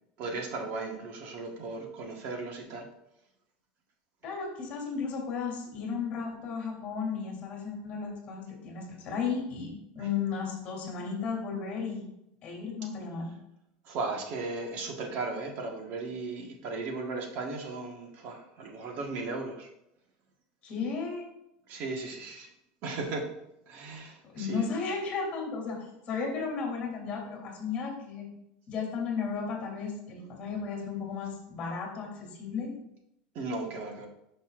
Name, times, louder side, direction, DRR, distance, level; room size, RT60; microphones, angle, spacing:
voice 1, 0.2-2.8 13.8-19.7 21.7-22.5 22.8-23.2 23.7-24.6 33.3-34.1, right 3 dB, 45° right, 2 dB, 1.4 m, -36 dB
voice 2, 4.2-12.0 12.4-13.3 20.6-21.3 24.2-28.3 28.7-32.7, left 5 dB, 30° left, -1 dB, 2.8 m, -34 dB
10.5 x 5.6 x 2.5 m, 0.84 s
supercardioid pair, 160°, 4 cm